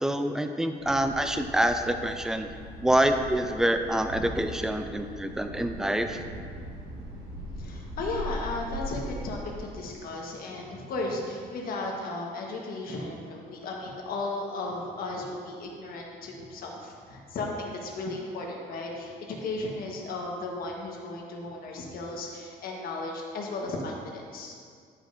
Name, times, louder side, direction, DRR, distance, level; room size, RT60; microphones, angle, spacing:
voice 1, 0.0-2.5 2.8-6.2, right 1 dB, 5° right, 7 dB, 0.4 m, -26 dB
Thunder, 0.8-9.8, equal, 85° right, 1.3 m, -40 dB
voice 2, 7.5-24.5, left 2 dB, 60° left, -1 dB, 1.4 m, -35 dB
11.5 x 5.1 x 2.7 m, 2.2 s
cardioid pair, 110°, 17 cm